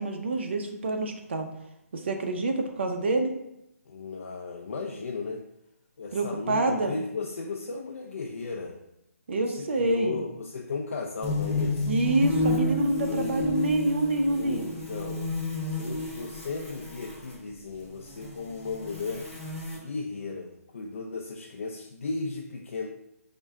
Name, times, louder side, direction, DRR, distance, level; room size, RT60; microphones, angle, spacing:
voice 1, 0.0-1.5 1.9-3.3 6.1-6.9 9.3-10.2 11.8-14.7, right 2 dB, 45° right, 4 dB, 0.5 m, -27 dB
voice 2, 3.9-5.4 6.0-8.8 9.4-12.0 13.1-13.4 14.3-15.3 15.8-19.3 19.7-22.9, left 4 dB, 55° left, 1 dB, 0.4 m, -35 dB
sound 1, 11.2-17.3 17.9-19.8, left 2 dB, 10° left, 0.9 m, -31 dB
4.6 x 2.1 x 3.5 m, 0.84 s
hypercardioid pair, 170°, 8 cm